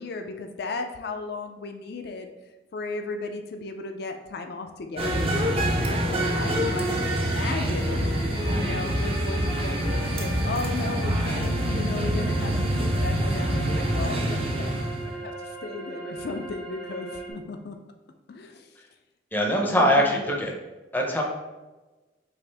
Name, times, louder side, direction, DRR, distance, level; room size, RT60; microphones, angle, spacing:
voice 1, 0.0-2.3 2.7-5.3 5.6-8.1 8.5-12.5 12.8-17.8 18.3-18.8 19.6-20.4, left 3 dB, 60° left, 5 dB, 0.4 m, -35 dB
sound 1, 5.0-15.1, right 1 dB, 30° right, 0.6 m, -26 dB
sound 2, 5.8-17.3, equal, 60° right, 1.1 m, -37 dB
voice 2, 19.3-20.5 20.9-21.2, equal, 10° left, 0 dB, 0.6 m, -22 dB
6.1 x 2.5 x 3.3 m, 1.2 s
head